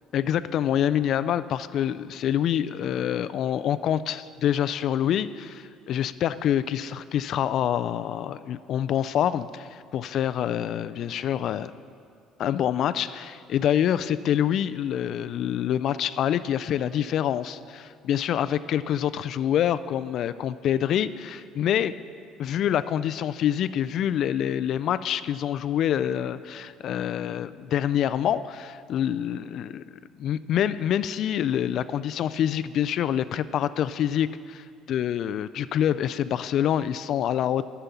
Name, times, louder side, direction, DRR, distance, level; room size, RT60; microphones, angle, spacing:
voice 1, 0.1-11.7 12.4-22.0 22.4-29.8 30.2-37.6, left 10 dB, 45° left, 14 dB, 0.3 m, -26 dB
11.5 x 6.9 x 7.2 m, 2.3 s
cardioid pair, 165°, 0 cm